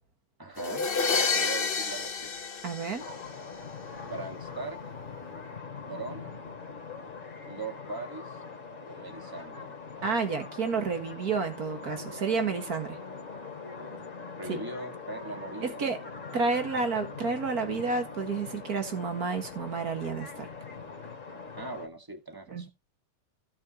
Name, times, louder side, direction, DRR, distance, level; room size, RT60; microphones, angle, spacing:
voice 1, 0.4-2.3 4.0-4.8 5.8-6.4 7.4-8.4 8.9-9.8 13.8-14.0 14.4-15.9 16.7-16.8 21.5-22.7, right 3 dB, 10° right, 1.4 m, -40 dB
sound 1, 0.6-3.5, left 5 dB, 55° left, 0.6 m, -29 dB
voice 2, 2.6-3.1 10.0-13.0 14.5-14.6 15.6-16.0 16.3-20.5 22.5-22.7, right 4 dB, 45° right, 2.0 m, -30 dB
sound 2, 3.0-21.9, left 5 dB, 35° left, 3.3 m, -42 dB
16.0 x 6.4 x 2.9 m
omnidirectional pair, 2.4 m